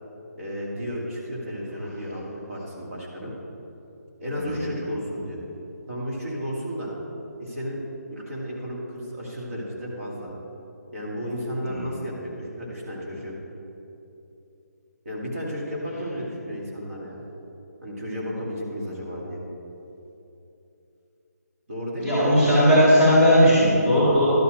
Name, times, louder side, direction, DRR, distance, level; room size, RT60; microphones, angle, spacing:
voice 1, 0.4-3.3 4.2-5.4 5.9-6.9 7.4-7.8 8.1-10.3 10.9-13.4 15.0-17.2 17.8-19.4 21.7-22.2, equal, 55° right, -4 dB, 2.3 m, -33 dB
voice 2, 22.0-24.3, equal, 10° right, -9 dB, 1.8 m, -17 dB
12.0 x 4.3 x 6.4 m, 2.9 s
hypercardioid pair, 170°, 9 cm